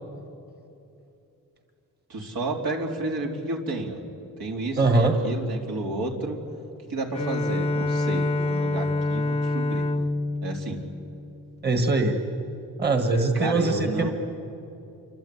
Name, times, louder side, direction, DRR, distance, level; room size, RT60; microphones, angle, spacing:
voice 1, 2.1-4.0 4.4-6.4 6.9-9.8 10.4-10.8 13.3-14.1, right 2 dB, 75° right, 1 dB, 3.6 m, -31 dB
voice 2, 4.8-5.2 11.6-12.2 12.8-14.1, right 3 dB, 30° right, 5 dB, 1.8 m, -22 dB
Bowed string instrument, 7.1-11.8, left 2 dB, 20° left, 0.7 m, -27 dB
28.0 x 24.5 x 8.6 m, 2.8 s
wide cardioid pair, 145°, 35 cm